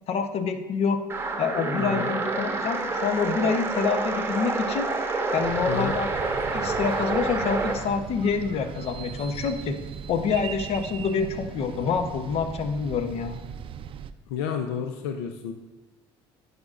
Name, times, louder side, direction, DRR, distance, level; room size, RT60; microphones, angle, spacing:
voice 1, 0.1-1.0 1.4-4.9 5.3-6.1 6.5-9.8 10.1-13.4, left 5 dB, 55° left, 8 dB, 0.8 m, -27 dB
sound 1, 1.1-7.8, right 3 dB, 20° right, 1.0 m, -28 dB
voice 2, 1.8-2.1 5.7-5.9 14.3-15.5, left 7 dB, 90° left, 6 dB, 0.5 m, -30 dB
sound 2, 5.4-14.1, right 8 dB, 45° right, 0.4 m, -39 dB
10.5 x 5.1 x 2.5 m, 1.1 s
supercardioid pair, 80°, 13 cm